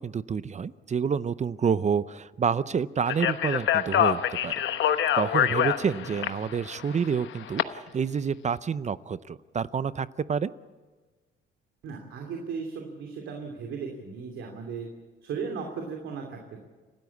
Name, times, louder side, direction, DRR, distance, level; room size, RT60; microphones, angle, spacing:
voice 1, 0.0-4.5 5.1-10.5, right 6 dB, 35° right, 16 dB, 0.6 m, -28 dB
Speech, 3.1-7.6, left 10 dB, 70° left, 1.1 m, -26 dB
voice 2, 11.8-14.9 15.2-16.6, right 5 dB, 80° right, 2 dB, 2.8 m, -36 dB
29.5 x 13.0 x 8.5 m, 1.3 s
cardioid pair, 90°, 20 cm